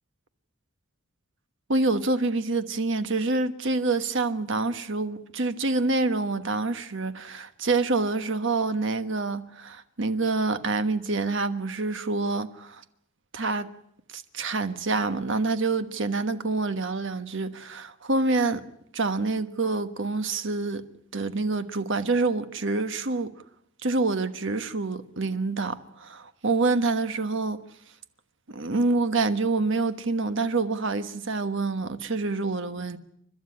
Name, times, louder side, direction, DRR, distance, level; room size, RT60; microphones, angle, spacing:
voice 1, 1.7-12.8 13.3-13.7 14.1-18.6 18.9-20.8 21.1-23.3 23.8-27.6 28.5-33.0, right 3 dB, 60° right, 1.3 m, -27 dB
29.5 x 12.0 x 9.8 m
head